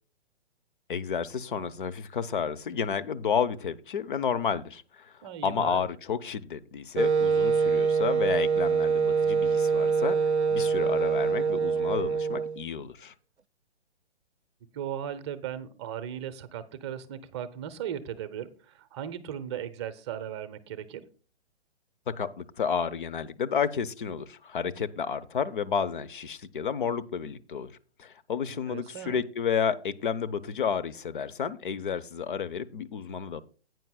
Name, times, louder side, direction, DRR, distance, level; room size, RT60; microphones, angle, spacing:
voice 1, 0.9-5.1 5.4-13.1 22.1-27.7 28.0-33.4, left 7 dB, 50° left, 0.8 m, -31 dB
voice 2, 5.2-5.8 14.7-21.0 28.5-29.2, right 9 dB, 25° right, 0.8 m, -37 dB
Wind instrument woodwind instrument, 7.0-12.6, right 5 dB, 85° right, 0.5 m, -25 dB
16.0 x 9.2 x 2.3 m
figure-of-eight pair, 125°, 33 cm